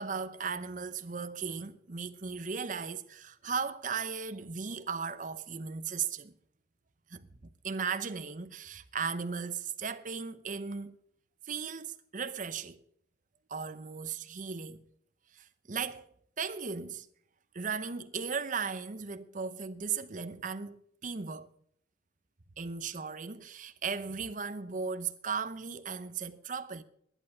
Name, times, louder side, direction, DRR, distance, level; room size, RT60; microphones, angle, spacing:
voice 1, 0.0-6.3 7.1-11.0 11.5-12.8 13.5-14.8 15.3-16.1 16.4-17.1 17.5-21.5 22.6-26.8, right 5 dB, 45° right, 0.8 m, -37 dB
11.0 x 11.0 x 6.3 m
head